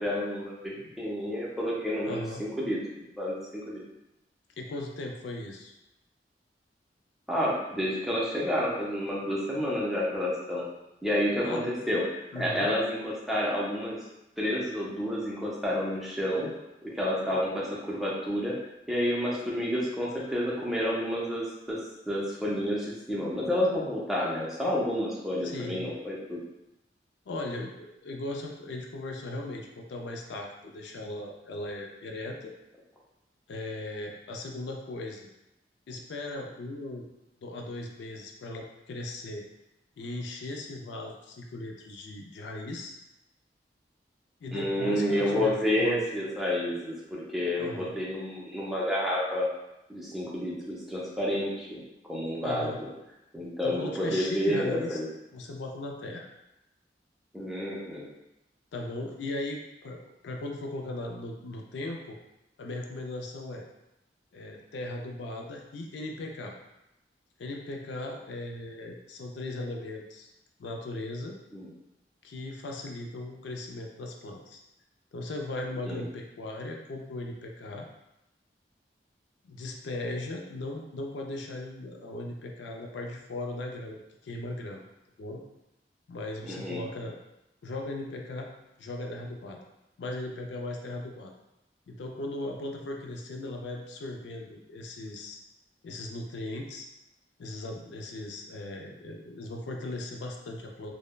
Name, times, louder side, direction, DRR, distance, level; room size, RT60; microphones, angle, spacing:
voice 1, 0.0-3.8 7.3-10.6 11.0-12.0 12.4-14.0 14.4-16.5 16.9-18.6 18.9-21.8 22.1-26.4 44.5-49.5 49.9-52.9 53.3-55.1 57.3-58.1 71.5-71.7 75.8-76.1 86.4-86.8, left 1 dB, ahead, -6 dB, 0.5 m, -30 dB
voice 2, 2.0-2.4 4.6-5.7 11.4-11.8 12.3-12.7 25.4-25.9 27.3-32.5 33.5-35.3 35.9-37.1 37.4-39.4 40.0-42.9 44.4-46.0 47.6-47.9 52.4-52.8 53.6-55.0 55.3-56.3 58.7-62.2 62.6-63.7 64.3-66.6 67.4-70.3 70.6-71.4 72.2-74.6 75.1-77.9 79.4-84.8 85.2-85.4 86.1-87.2 87.6-88.5 88.8-89.6 90.0-91.3 91.9-95.4 95.8-96.9 97.4-100.9, left 2 dB, 80° left, 1 dB, 0.4 m, -38 dB
3.1 x 2.0 x 2.2 m, 0.91 s
head